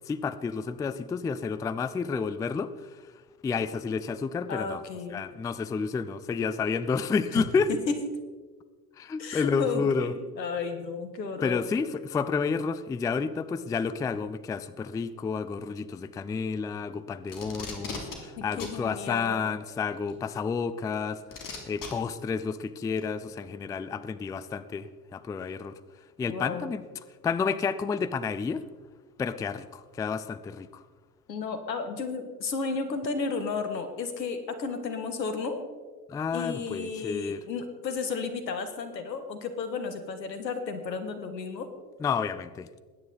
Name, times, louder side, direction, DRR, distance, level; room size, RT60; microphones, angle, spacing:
voice 1, 0.1-3.1 3.4-4.8 5.1-7.7 9.0-10.1 11.4-25.8 26.2-26.9 27.2-28.6 29.2-30.8 36.1-37.4 42.0-42.7, left 5 dB, 10° left, 14 dB, 0.3 m, -30 dB
voice 2, 4.5-5.2 7.3-7.4 7.7-7.9 9.2-11.6 18.4-19.5 26.3-26.7 31.3-35.6 36.3-41.7, left 4 dB, 85° left, 9 dB, 1.6 m, -33 dB
Packing tape duct tape, 17.3-18.2 18.6-18.8 20.1-20.2 21.3-21.9 23.0-23.1, left 4 dB, 40° left, 3.1 m, -38 dB
20.5 x 9.6 x 4.0 m, 1.4 s
figure-of-eight pair, 65°, 50 cm